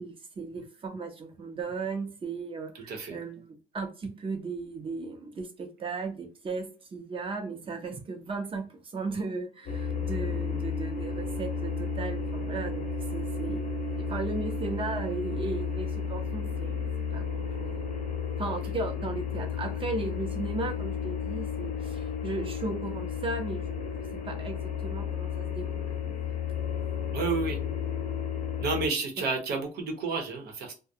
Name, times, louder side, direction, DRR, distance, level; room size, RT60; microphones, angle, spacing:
voice 1, 0.0-16.7 17.1-17.9 18.4-23.9 24.2-25.6 26.0-26.2, right 3 dB, 30° right, 0.7 m, -36 dB
voice 2, 2.7-3.2 18.6-18.7 27.1-27.6 28.6-30.7, right 4 dB, 70° right, 1.0 m, -31 dB
sound 1, 9.7-28.9, left 6 dB, 50° left, 0.7 m, -33 dB
2.3 x 2.2 x 2.7 m
cardioid pair, 110°, 17 cm